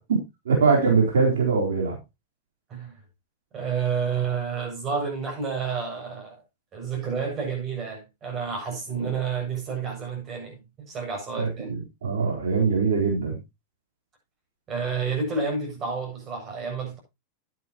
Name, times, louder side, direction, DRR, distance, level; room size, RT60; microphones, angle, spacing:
voice 1, 0.5-2.0 9.0-9.1 11.4-13.4, right 5 dB, 85° right, 4.0 m, -22 dB
voice 2, 3.5-6.4 6.7-11.7 14.7-17.0, right 5 dB, 30° right, 7.5 m, -30 dB
12.0 x 9.1 x 3.0 m
hypercardioid pair, 115°, 0 cm